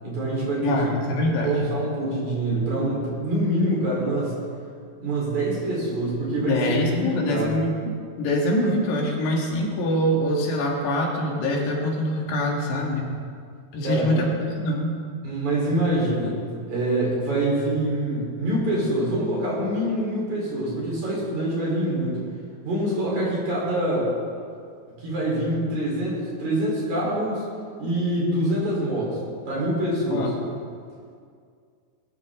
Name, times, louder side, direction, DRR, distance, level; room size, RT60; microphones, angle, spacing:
voice 1, 0.0-0.7 1.4-4.4 5.0-7.5 13.8-14.2 15.2-16.4 16.7-22.2 22.6-24.1 25.0-27.4 27.8-29.2 29.5-30.3, right 1 dB, 45° right, -5 dB, 5.3 m, -25 dB
voice 2, 0.6-1.6 6.4-13.1 13.7-14.9 30.1-30.3, left 1 dB, 85° left, -1 dB, 4.1 m, -24 dB
20.5 x 13.0 x 3.8 m, 2.2 s
omnidirectional pair, 4.8 m